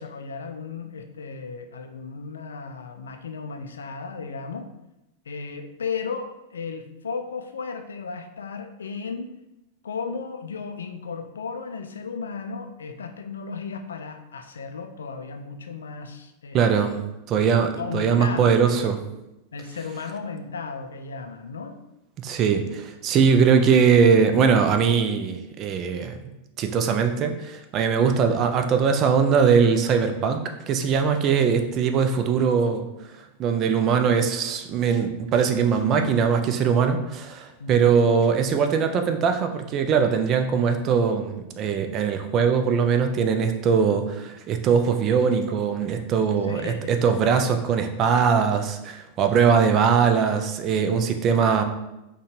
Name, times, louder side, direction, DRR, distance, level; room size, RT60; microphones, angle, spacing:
voice 1, 0.0-4.7 5.3-9.3 9.8-17.0 17.8-18.9 19.5-21.8 37.6-38.0 46.4-46.9 49.5-49.9, left 5 dB, 70° left, 6 dB, 0.3 m, -35 dB
voice 2, 16.5-17.0 17.3-19.0 22.2-26.2 26.6-32.9 33.4-51.6, right 6 dB, 35° right, 6 dB, 0.4 m, -21 dB
4.4 x 2.2 x 3.1 m, 0.92 s
figure-of-eight pair, 90°, 0 cm